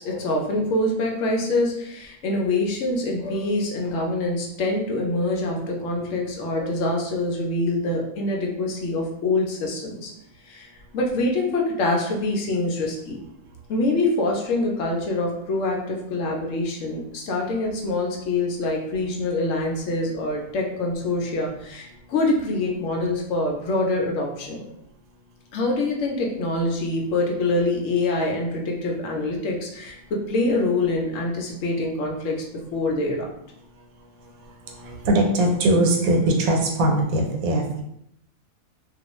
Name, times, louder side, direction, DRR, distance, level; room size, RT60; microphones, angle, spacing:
voice 1, 0.0-10.1 10.4-13.2 13.7-24.7 25.5-32.4 32.7-33.3, left 2 dB, 70° left, 0 dB, 0.9 m, -25 dB
voice 2, 34.8-37.8, right 1 dB, 85° right, 2 dB, 1.1 m, -21 dB
2.4 x 2.2 x 3.0 m, 0.77 s
omnidirectional pair, 1.5 m